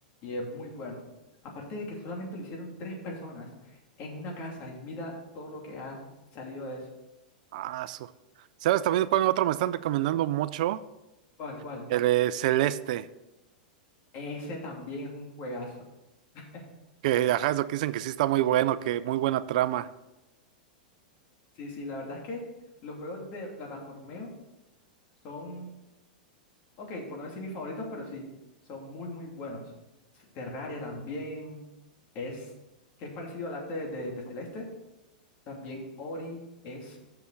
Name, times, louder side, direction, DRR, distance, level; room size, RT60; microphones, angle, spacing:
voice 1, 0.2-1.0 1.5-6.0 6.3-6.9 11.4-11.9 14.1-15.8 16.3-16.6 17.1-17.4 21.5-22.4 22.8-24.3 25.2-25.7 26.8-28.2 28.7-29.7 30.3-31.7 32.1-32.5 33.0-34.7 35.5-37.0, left 1 dB, 45° left, -1 dB, 2.8 m, -38 dB
voice 2, 7.5-8.0 8.6-10.8 11.9-13.1 17.0-19.9, right 14 dB, 60° right, 15 dB, 0.4 m, -26 dB
7.0 x 6.7 x 6.3 m, 0.99 s
hypercardioid pair, 125°, 5 cm